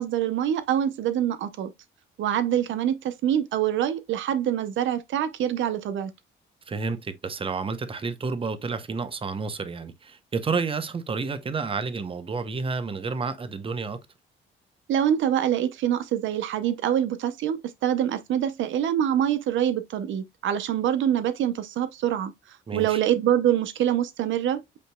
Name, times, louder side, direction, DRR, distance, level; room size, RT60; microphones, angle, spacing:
voice 1, 0.0-1.7 2.2-6.1 14.9-24.8, right 10 dB, 75° right, 0.6 m, -25 dB
voice 2, 6.7-14.0 22.7-23.0, right 4 dB, 25° right, 0.7 m, -30 dB
8.3 x 2.9 x 2.2 m
cardioid pair, 90°, 20 cm